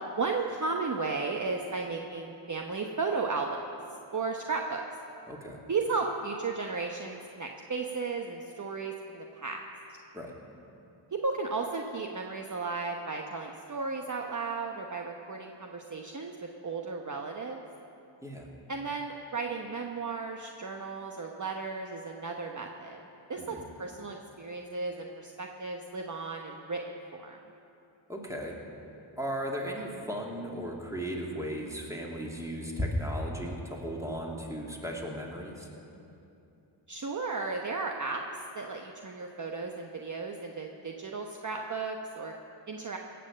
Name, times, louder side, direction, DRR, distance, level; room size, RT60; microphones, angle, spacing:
voice 1, 0.2-3.6 4.1-4.8 5.7-9.6 9.9-10.0 11.1-17.6 18.7-23.0 23.3-27.4 36.9-38.2 38.5-42.3 42.7-43.0, right 4 dB, 35° right, 2 dB, 1.0 m, -34 dB
voice 2, 5.3-5.6 10.1-10.3 18.2-18.5 23.4-23.6 28.1-28.6 29.2-35.7, equal, 5° right, -1 dB, 2.6 m, -35 dB
17.5 x 7.0 x 7.5 m, 2.8 s
cardioid pair, 55°, 49 cm